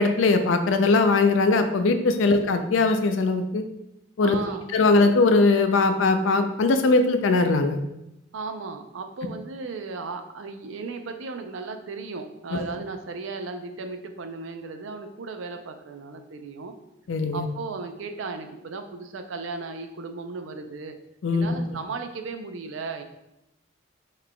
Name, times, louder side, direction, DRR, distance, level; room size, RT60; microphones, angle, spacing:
voice 1, 0.0-3.6 4.2-4.4 4.7-7.8 17.1-17.5 21.2-21.5, left 3 dB, 75° left, 8 dB, 0.4 m, -20 dB
voice 2, 4.2-4.7 8.3-16.7 17.3-21.0 21.3-23.0, right 4 dB, 75° right, 6 dB, 0.5 m, -35 dB
5.8 x 3.2 x 2.2 m, 0.88 s
head